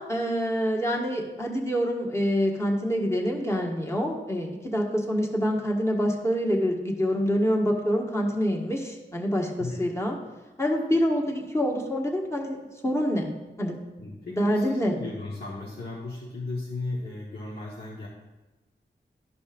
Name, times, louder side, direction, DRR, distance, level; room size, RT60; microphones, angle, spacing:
voice 1, 0.0-10.1 10.6-12.6 12.8-13.3 13.6-13.8 14.3-14.9, equal, 15° left, -1 dB, 1.5 m, -26 dB
voice 2, 9.6-9.9 14.0-18.1, left 2 dB, 60° left, -4 dB, 1.2 m, -36 dB
12.0 x 5.2 x 2.5 m, 1.1 s
cardioid pair, 40°, 19 cm